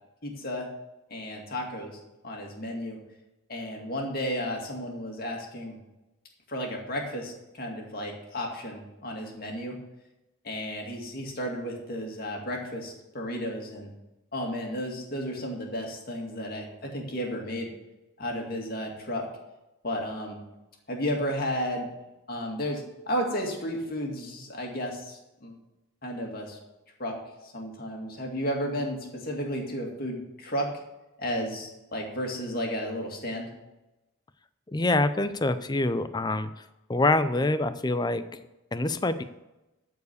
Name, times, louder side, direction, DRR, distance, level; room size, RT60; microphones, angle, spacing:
voice 1, 0.2-0.7 1.1-2.0 2.2-3.0 3.5-5.8 6.5-9.8 10.4-13.9 14.3-17.7 18.2-19.3 19.8-20.4 20.9-21.9 22.3-25.6 26.0-26.6 27.0-27.2 27.4-30.7 31.2-33.5, equal, 45° left, 1 dB, 2.2 m, -33 dB
voice 2, 34.7-36.5 36.9-38.2 38.7-39.2, left 2 dB, 20° left, 12 dB, 0.5 m, -25 dB
13.0 x 4.8 x 6.8 m, 0.98 s
head